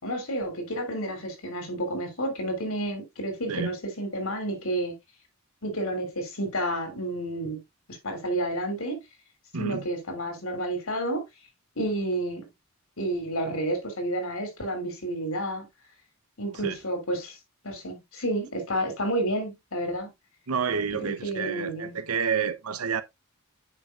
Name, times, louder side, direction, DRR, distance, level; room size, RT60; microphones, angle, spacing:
voice 1, 0.0-5.0 5.6-7.6 8.0-9.0 9.6-11.2 11.8-12.5 13.0-15.7 16.4-17.4 17.6-20.1 21.0-22.0, right 1 dB, 65° left, 2.9 m, -30 dB
voice 2, 9.5-9.9 16.5-16.8 20.5-23.0, right 6 dB, 80° right, 0.8 m, -29 dB
9.3 x 5.4 x 2.5 m
head